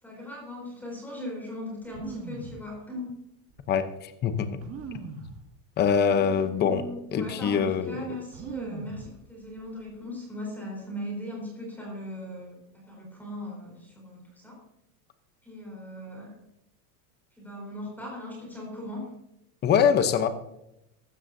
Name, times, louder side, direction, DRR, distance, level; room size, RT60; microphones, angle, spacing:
voice 1, 0.0-3.2 6.0-14.6 15.4-16.3 17.4-19.1, left 1 dB, 5° left, -2 dB, 4.1 m, -39 dB
sound 1, 1.8-2.6 3.5-3.6 4.6-5.4 6.2-6.3 6.7-7.2 8.3-9.1 9.4-9.9, right 5 dB, 30° right, 1.4 m, -40 dB
voice 2, 3.7-4.6 5.8-6.8 7.1-8.2 19.6-20.3, left 7 dB, 20° left, 10 dB, 0.8 m, -24 dB
15.5 x 12.5 x 2.7 m, 0.83 s
supercardioid pair, 150°, 46 cm